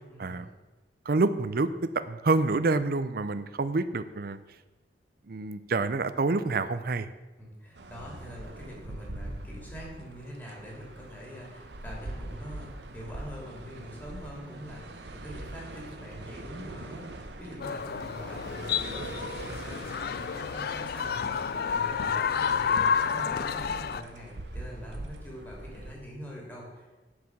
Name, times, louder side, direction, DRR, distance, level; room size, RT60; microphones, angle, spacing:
voice 1, 0.1-0.5 7.4-27.0, equal, 10° left, -3 dB, 2.9 m, -44 dB
voice 2, 1.1-1.7 1.9-4.4 5.3-7.1, right 3 dB, 55° right, 12 dB, 0.6 m, -27 dB
sound 1, 7.7-25.9, right 2 dB, 75° right, 0.9 m, -43 dB
sound 2, 17.6-24.0, left 6 dB, 60° left, 0.4 m, -30 dB
11.5 x 4.9 x 7.2 m, 1.2 s
head